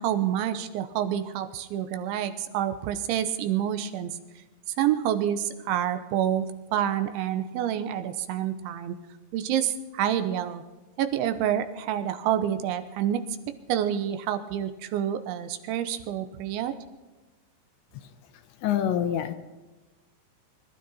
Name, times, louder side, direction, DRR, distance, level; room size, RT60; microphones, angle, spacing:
voice 1, 0.0-4.1 4.8-6.5 6.7-9.0 9.3-10.6 11.0-13.2 13.7-16.8, right 10 dB, 80° right, 9 dB, 3.2 m, -28 dB
voice 2, 18.6-19.4, left 10 dB, 75° left, 9 dB, 3.0 m, -25 dB
24.5 x 12.5 x 4.3 m, 1.2 s
omnidirectional pair, 5.6 m